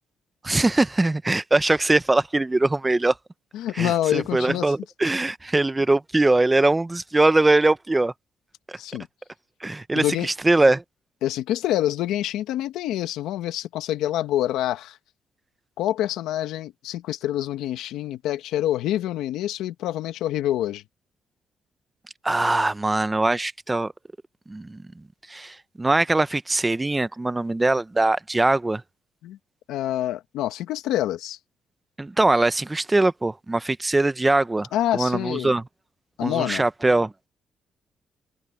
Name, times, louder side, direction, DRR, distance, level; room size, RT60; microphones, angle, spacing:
voice 1, 0.4-3.2 3.7-8.1 8.7-8.8 9.6-10.8 22.2-23.9 24.5-28.8 32.0-34.7 34.9-35.6 36.2-37.1, right 2 dB, 15° right, 0.8 m, -22 dB
voice 2, 3.5-4.7 8.8-9.1 9.9-10.3 11.2-15.0 15.8-20.8 29.2-29.4 29.7-31.4 34.7-35.5 36.2-36.6, left 13 dB, 90° left, 1.4 m, -26 dB
cardioid pair, 90°, 0 cm